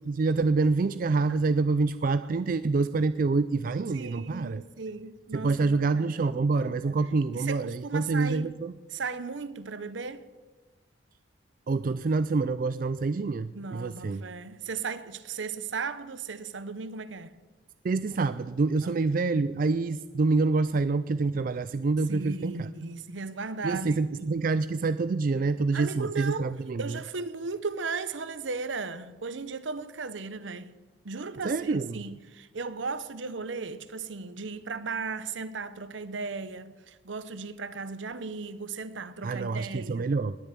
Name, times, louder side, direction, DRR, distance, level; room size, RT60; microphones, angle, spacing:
voice 1, 0.0-4.6 5.3-8.7 11.7-14.2 17.8-22.7 23.6-27.0 31.4-32.0 39.2-40.4, right 3 dB, 45° right, 0.4 m, -27 dB
voice 2, 3.9-6.1 7.3-8.5 8.9-10.2 13.5-17.3 18.8-18.9 22.1-23.9 25.7-30.7 31.0-40.1, right 4 dB, 75° right, 0.8 m, -36 dB
20.0 x 6.8 x 8.9 m
head